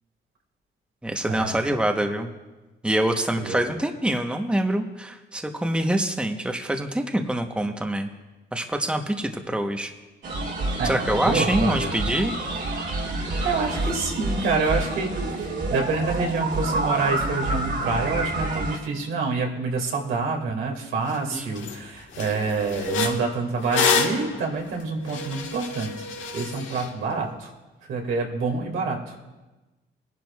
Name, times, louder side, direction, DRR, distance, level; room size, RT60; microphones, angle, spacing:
voice 1, 1.0-2.3 2.8-8.1 8.5-9.9 10.8-12.4 12.8-13.5 21.3-21.5, right 1 dB, 5° right, 4 dB, 1.0 m, -25 dB
sound 1, 10.2-18.8, right 2 dB, 65° right, 2.8 m, -28 dB
voice 2, 10.8-12.1 13.4-25.9 26.3-27.5 27.9-29.1, right 4 dB, 85° right, 1 dB, 2.2 m, -27 dB
sound 2, 21.1-21.2 21.6-21.8 22.1-26.9, left 4 dB, 75° left, 1.5 m, -28 dB
21.5 x 10.5 x 2.4 m, 1.1 s
cardioid pair, 90°, 20 cm